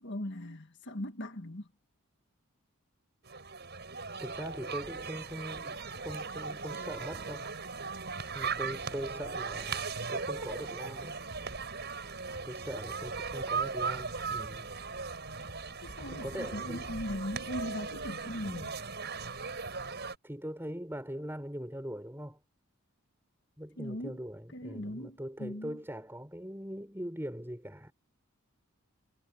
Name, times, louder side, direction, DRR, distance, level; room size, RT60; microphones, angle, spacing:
voice 1, 0.0-1.7 15.8-18.8 23.8-24.2 24.5-25.8, left 1 dB, 55° left, 1.9 m, -39 dB
sound 1, 3.2-20.2, right 4 dB, 50° right, 7.2 m, -38 dB
voice 2, 4.2-7.5 8.3-11.2 12.4-14.7 16.0-16.9 20.2-22.4 23.6-27.9, equal, 10° right, 6.2 m, -41 dB
head